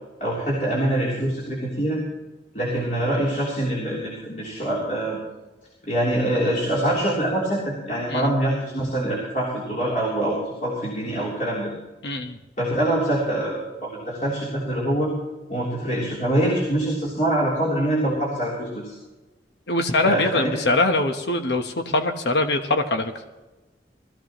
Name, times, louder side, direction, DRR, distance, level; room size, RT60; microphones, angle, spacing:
voice 1, 0.2-2.0 2.5-5.2 5.8-11.7 12.6-15.1 15.5-18.9 20.0-20.6, right 1 dB, 45° left, -6 dB, 3.4 m, -24 dB
voice 2, 12.0-12.4 19.7-23.1, left 2 dB, 75° left, 6 dB, 1.1 m, -23 dB
20.5 x 14.5 x 3.0 m, 1.1 s
head